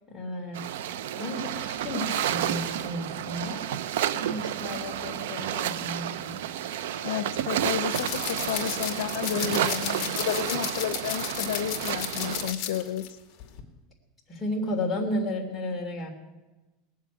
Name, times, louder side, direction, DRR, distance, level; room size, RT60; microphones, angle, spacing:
voice 1, 0.1-0.6 1.2-3.6 4.1-6.3 14.3-16.1, left 1 dB, 10° left, -3 dB, 3.1 m, -33 dB
sound 1, 0.5-12.5, right 10 dB, 85° right, 0.7 m, -31 dB
voice 2, 7.0-13.1, left 11 dB, 85° left, 11 dB, 0.8 m, -32 dB
sound 2, 7.9-13.1 13.4-13.6, left 10 dB, 40° left, 2.4 m, -34 dB
19.5 x 7.5 x 9.3 m, 1.1 s
supercardioid pair, 160°, 0 cm